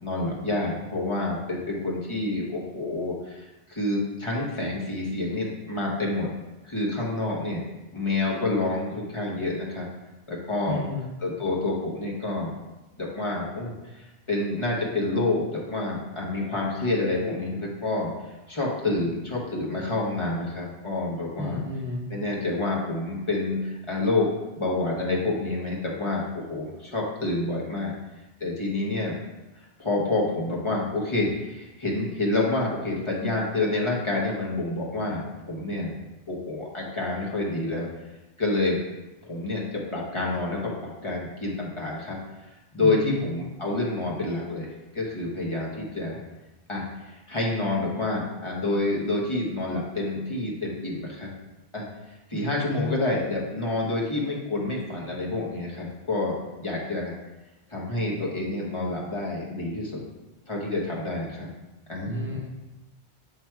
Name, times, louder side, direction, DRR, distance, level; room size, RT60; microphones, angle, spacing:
voice 1, 0.0-6.3 6.6-7.6 7.9-9.9 10.3-10.8 11.2-12.5 13.0-18.1 18.5-21.6 22.1-24.3 24.6-27.9 28.4-29.1 29.8-35.9 36.3-37.9 38.4-38.8 39.2-42.2 42.7-46.2 46.7-51.3 51.7-51.9 52.3-57.1 57.7-60.0 60.5-61.5 61.9-62.4, left 2 dB, 30° left, -4 dB, 1.3 m, -28 dB
voice 2, 10.7-11.1 21.4-22.1 42.8-43.4 52.3-53.1 62.0-62.5, left 3 dB, 15° right, -1 dB, 0.6 m, -32 dB
7.6 x 3.1 x 4.6 m, 1.0 s
omnidirectional pair, 1.1 m